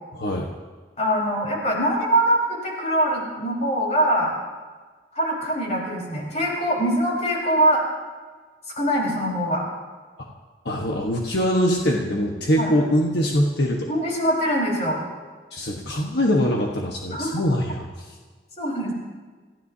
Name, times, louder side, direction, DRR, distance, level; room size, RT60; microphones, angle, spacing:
voice 1, 1.0-4.3 5.1-7.8 8.8-9.6 12.6-12.7 13.9-15.0 17.1-17.3 18.6-18.9, right 1 dB, 35° left, -3 dB, 4.6 m, -23 dB
voice 2, 10.6-13.9 15.5-18.1, equal, 70° left, 0 dB, 1.4 m, -23 dB
28.0 x 15.0 x 2.8 m, 1.4 s
head